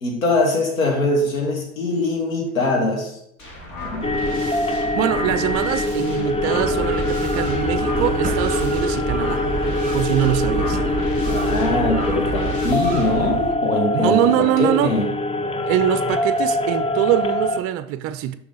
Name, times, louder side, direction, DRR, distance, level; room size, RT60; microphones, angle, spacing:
voice 1, 0.0-3.2 3.9-4.1 11.2-15.1, left 2 dB, 90° left, 1.8 m, -22 dB
sound 1, 3.4-13.3, left 1 dB, 45° left, 2.6 m, -35 dB
sound 2, 4.0-17.6, left 1 dB, 15° left, 0.6 m, -23 dB
voice 2, 4.9-9.4 9.9-10.8 13.9-14.9 15.7-18.4, right 12 dB, 35° right, 0.4 m, -23 dB
sound 3, 6.6-13.5, right 6 dB, 20° right, 1.5 m, -29 dB
6.6 x 5.7 x 3.9 m
hypercardioid pair, 80°, 40 cm